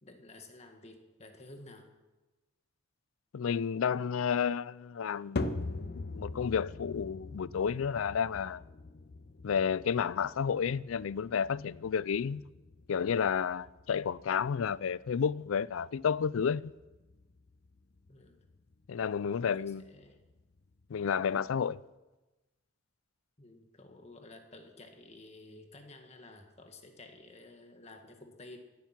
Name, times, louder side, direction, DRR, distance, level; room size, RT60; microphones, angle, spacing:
voice 1, 0.0-1.9 18.1-18.4 19.4-20.2 21.5-21.7 23.4-28.6, left 2 dB, 30° left, 1.7 m, -52 dB
voice 2, 3.3-8.6 9.4-12.4 12.9-16.7 18.9-19.9 20.9-21.8, left 7 dB, 80° left, 0.4 m, -31 dB
sound 1, 5.4-21.8, left 2 dB, 50° left, 0.7 m, -44 dB
16.5 x 12.0 x 5.9 m
head